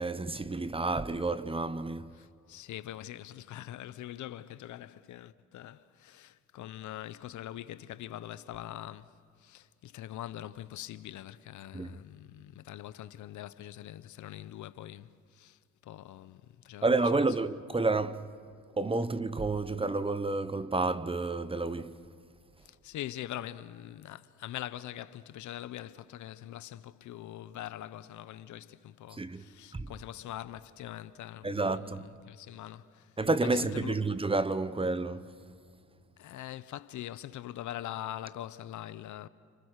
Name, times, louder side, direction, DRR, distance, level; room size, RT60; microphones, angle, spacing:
voice 1, 0.0-2.2 11.7-12.0 16.8-18.3 18.8-22.0 29.1-29.4 29.7-29.9 31.4-32.1 33.2-35.3, right 3 dB, 20° right, 0.9 m, -30 dB
voice 2, 2.1-17.3 22.6-33.2 33.5-34.1 36.2-39.3, left 12 dB, 75° left, 0.9 m, -43 dB
30.0 x 25.5 x 6.6 m
cardioid pair, 90°, 30 cm